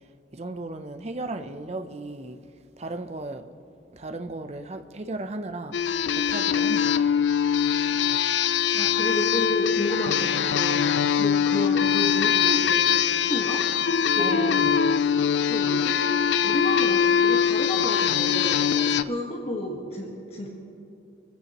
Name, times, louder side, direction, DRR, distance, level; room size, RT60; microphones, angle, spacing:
voice 1, 0.3-2.4 2.8-3.5 3.9-5.8 6.2-7.0 10.7-10.9 14.2-14.8 18.8-19.1, right 2 dB, 35° right, 7 dB, 0.6 m, -35 dB
sound 1, 5.7-19.0, left 8 dB, 70° left, 0.4 m, -22 dB
voice 2, 8.7-10.9 11.2-13.6 14.1-14.7 15.4-16.0 16.4-18.6 19.0-20.5, equal, 35° left, -1 dB, 1.5 m, -31 dB
25.5 x 15.0 x 3.0 m, 2.5 s
head